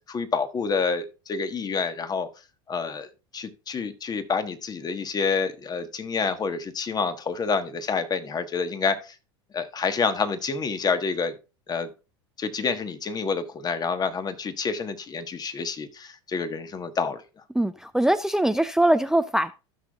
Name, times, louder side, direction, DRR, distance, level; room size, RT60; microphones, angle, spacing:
voice 1, 0.1-2.3 2.7-3.1 3.3-9.1 9.5-11.3 11.7-11.9 12.4-17.2, left 5 dB, 25° left, 1.4 m, -28 dB
voice 2, 17.5-19.5, right 1 dB, 5° right, 0.4 m, -22 dB
15.5 x 6.3 x 2.4 m
hypercardioid pair, 90°, 14 cm